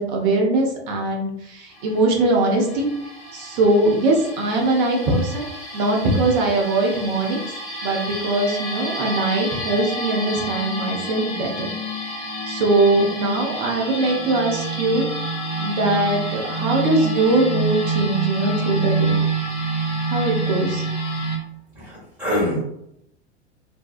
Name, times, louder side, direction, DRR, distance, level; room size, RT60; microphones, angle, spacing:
voice 1, 0.0-2.9 3.3-5.5 5.7-7.4 7.8-11.7 12.0-12.2 12.5-15.1 15.6-19.2 20.1-20.8, right 2 dB, 40° right, 0 dB, 0.7 m, -21 dB
sound 1, 1.7-21.4, right 2 dB, 20° left, 1.0 m, -28 dB
voice 2, 21.8-22.6, equal, 10° right, -10 dB, 1.1 m, -24 dB
2.6 x 2.2 x 2.4 m, 0.78 s
figure-of-eight pair, 90°, 34 cm